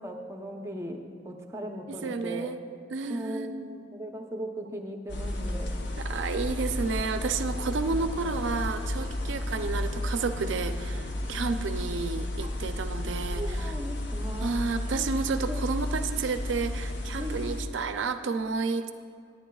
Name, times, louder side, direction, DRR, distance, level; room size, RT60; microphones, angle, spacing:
voice 1, 0.0-2.5 3.1-5.7 7.8-8.4 9.2-9.3 11.2-11.6 12.4-12.5 13.3-14.6 14.9-15.1 15.5-15.6 17.2-17.6, right 1 dB, 15° right, 2 dB, 0.7 m, -38 dB
voice 2, 1.9-2.6 2.9-3.8 6.0-13.7 14.4-18.9, right 4 dB, 80° right, 9 dB, 0.5 m, -31 dB
sound 1, 5.1-17.6, left 1 dB, 65° left, 0.9 m, -32 dB
16.0 x 9.4 x 2.3 m, 2.2 s
head